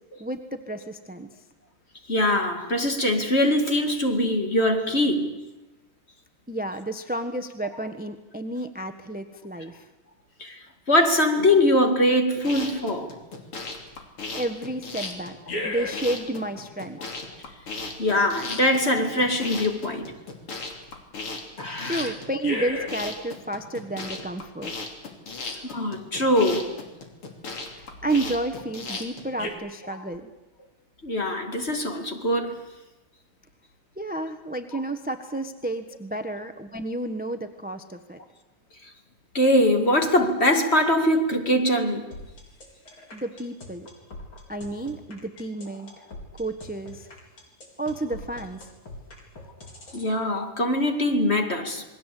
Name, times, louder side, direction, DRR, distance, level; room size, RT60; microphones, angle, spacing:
voice 1, 0.2-1.3 6.5-9.8 14.3-15.3 15.6-17.0 21.8-24.7 25.3-25.4 27.7-30.3 34.0-38.2 43.1-43.9 44.5-45.9 46.4-47.1 47.8-48.6, right 2 dB, 5° right, 0.9 m, -31 dB
voice 2, 2.1-5.4 10.4-10.6 10.9-13.2 18.0-20.1 21.6-22.1 25.7-26.8 29.9-30.0 31.0-32.6 39.3-42.1 49.9-51.8, left 1 dB, 30° left, 2.5 m, -22 dB
sound 1, 12.3-29.5, left 3 dB, 90° left, 3.9 m, -35 dB
sound 2, 42.1-50.1, left 1 dB, 65° left, 5.4 m, -43 dB
28.0 x 21.5 x 8.5 m
omnidirectional pair, 2.4 m